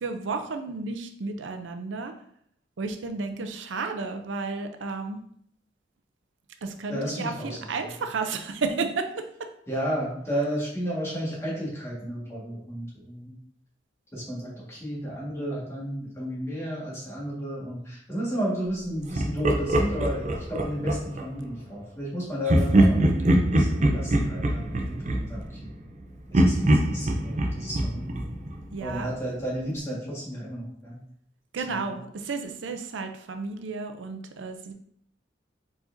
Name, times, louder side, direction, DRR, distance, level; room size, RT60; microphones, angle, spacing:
voice 1, 0.0-2.1 2.8-5.2 6.6-9.2 28.7-29.1 31.5-34.7, right 4 dB, 90° right, 6 dB, 0.5 m, -32 dB
voice 2, 6.9-7.5 9.7-13.3 14.1-25.7 26.3-28.3 28.8-31.0, equal, 15° left, -5 dB, 1.6 m, -32 dB
Laughter, 19.1-21.3 22.5-26.0 26.3-29.1, right 1 dB, 40° right, 0.6 m, -23 dB
4.6 x 4.3 x 2.6 m, 0.67 s
head